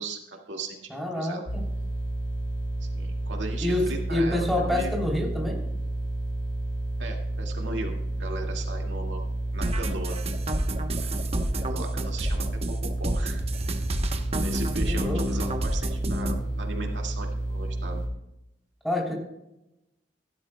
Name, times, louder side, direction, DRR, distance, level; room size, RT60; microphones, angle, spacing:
voice 1, 0.0-1.4 2.8-4.9 7.0-9.3 9.5-10.2 11.0-13.6 14.4-18.0, right 3 dB, 90° right, 1 dB, 2.1 m, -38 dB
voice 2, 0.9-1.6 3.6-5.6 14.8-15.2 18.8-19.1, left 1 dB, ahead, -2 dB, 3.2 m, -27 dB
sound 1, 1.5-18.1, right 1 dB, 70° left, 4.9 m, -31 dB
sound 2, 9.6-16.4, right 1 dB, 35° right, 1.0 m, -29 dB
16.0 x 12.0 x 2.3 m, 0.89 s
head